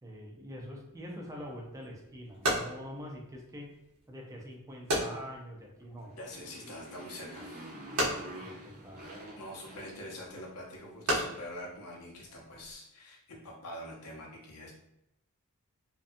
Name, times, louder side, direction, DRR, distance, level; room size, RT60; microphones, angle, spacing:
voice 1, 0.0-3.7 4.1-6.2 8.4-9.0, equal, 15° right, -1 dB, 0.4 m, -44 dB
sound 1, 1.4-12.8, right 1 dB, 75° right, 0.9 m, -37 dB
Motorcycle, 6.0-10.6, right 1 dB, 45° right, 0.7 m, -47 dB
voice 2, 6.2-7.5 8.3-8.6 9.4-14.7, left 1 dB, 85° left, -2 dB, 0.6 m, -45 dB
2.5 x 2.2 x 2.5 m, 0.88 s
head